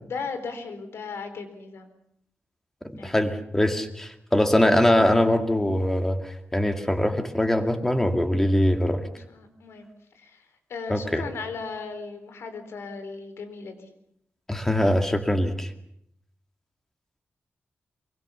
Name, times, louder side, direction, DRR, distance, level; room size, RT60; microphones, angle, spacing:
voice 1, 0.0-1.9 3.0-3.1 9.0-9.9 10.1-13.9, left 4 dB, 85° left, 8 dB, 4.0 m, -37 dB
voice 2, 3.0-9.0 10.9-11.2 14.5-15.7, left 1 dB, 10° left, 6 dB, 2.2 m, -22 dB
24.5 x 23.5 x 7.1 m, 0.74 s
wide cardioid pair, 155°, 4 cm